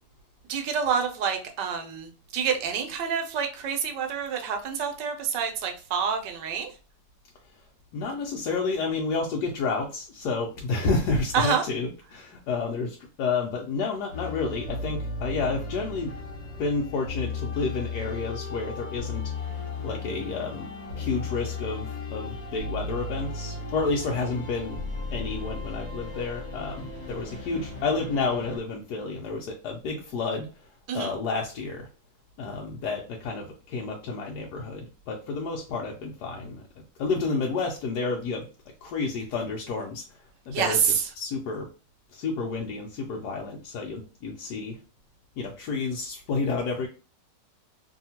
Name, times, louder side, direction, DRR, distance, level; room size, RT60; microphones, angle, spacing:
voice 1, 0.5-6.7 11.3-11.6 30.9-31.1 40.5-41.1, right 7 dB, 80° right, 1.3 m, -27 dB
voice 2, 7.9-16.1 16.6-19.3 19.8-20.7 21.0-24.8 25.1-30.7 30.9-31.9 32.4-36.6 37.0-38.5 38.8-40.2 40.5-41.7 42.1-44.8 45.4-46.9, left 4 dB, 75° left, 1.1 m, -30 dB
sound 1, 14.1-28.6, left 3 dB, 45° left, 1.1 m, -35 dB
2.8 x 2.7 x 2.8 m
omnidirectional pair, 1.9 m